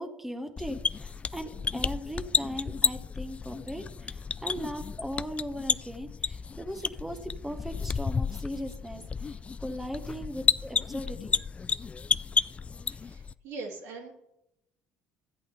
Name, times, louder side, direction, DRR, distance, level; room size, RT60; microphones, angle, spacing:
voice 1, 0.0-11.3, equal, 5° right, 6 dB, 1.1 m, -38 dB
sound 1, 0.6-13.3, left 5 dB, 25° left, 0.3 m, -32 dB
voice 2, 12.9-14.1, right 3 dB, 75° right, 0 dB, 2.4 m, -41 dB
13.5 x 8.3 x 3.3 m, 0.81 s
supercardioid pair, 75°, 5 cm